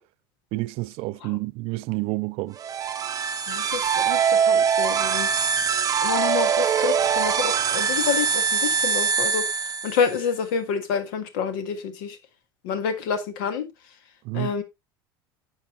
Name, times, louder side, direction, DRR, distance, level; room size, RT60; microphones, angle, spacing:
voice 1, 0.5-2.6 14.2-14.5, right 22 dB, 45° right, 0.4 m, -29 dB
sound 1, 2.6-10.2, right 7 dB, 30° right, 0.8 m, -23 dB
voice 2, 3.4-5.4 6.0-12.2 12.6-13.7 14.3-14.6, left 6 dB, 60° left, 1.6 m, -28 dB
10.5 x 7.0 x 2.7 m
figure-of-eight pair, 70°, 13 cm